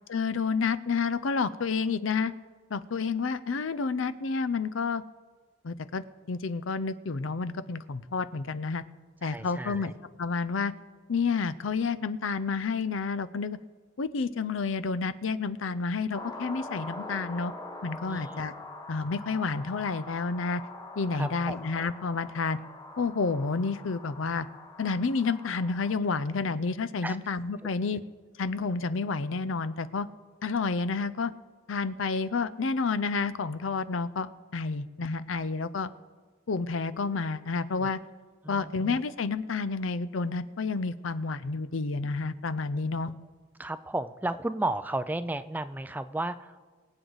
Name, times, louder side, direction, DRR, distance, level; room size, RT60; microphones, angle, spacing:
voice 1, 0.1-2.3 2.7-5.0 5.6-8.8 9.2-9.9 10.2-10.7 11.1-13.6 14.0-17.5 17.8-18.5 18.9-20.6 21.0-22.6 23.0-24.5 24.8-28.0 28.4-30.1 30.4-31.3 31.7-35.9 36.5-38.0 38.5-43.1, left 4 dB, 80° left, 15 dB, 0.5 m, -30 dB
voice 2, 9.3-9.9 18.1-18.4 21.1-21.6 27.0-27.2 37.8-37.9 38.4-38.8 43.6-46.6, right 2 dB, 10° right, 12 dB, 0.3 m, -33 dB
sound 1, 16.1-25.9, left 2 dB, 20° left, 0.8 m, -43 dB
23.5 x 7.9 x 4.0 m, 1.4 s
head